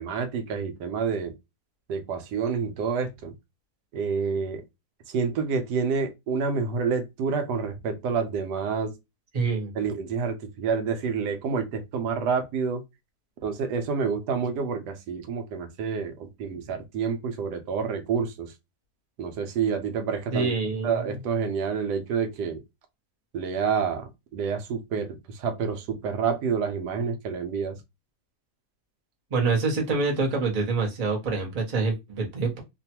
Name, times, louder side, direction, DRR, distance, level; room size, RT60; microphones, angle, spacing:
voice 1, 0.0-1.3 1.9-3.3 3.9-4.6 5.1-8.9 9.8-12.8 13.4-18.5 19.2-20.5 20.8-22.6 23.3-27.8, right 5 dB, 90° right, 1.2 m, -28 dB
voice 2, 9.3-9.7 20.3-21.2 29.3-32.6, right 4 dB, 35° right, 0.7 m, -26 dB
3.0 x 2.2 x 2.8 m
omnidirectional pair, 1.7 m